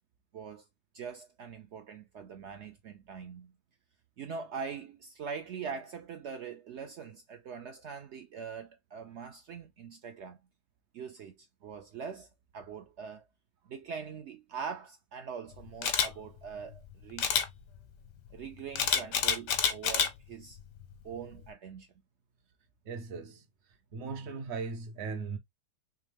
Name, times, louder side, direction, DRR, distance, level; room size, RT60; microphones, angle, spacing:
voice 1, 0.3-0.7 0.9-3.5 4.2-10.4 10.9-13.2 13.7-17.3 18.3-20.6 21.0-21.9, right 6 dB, 75° right, 0.6 m, -42 dB
Camera, 15.8-16.1 17.2-17.5 18.8-20.1 20.6-20.8, left 7 dB, 90° left, 1.4 m, -27 dB
voice 2, 22.8-23.5 23.9-25.4, right 4 dB, 50° right, 0.9 m, -38 dB
3.6 x 3.1 x 3.3 m
omnidirectional pair, 1.8 m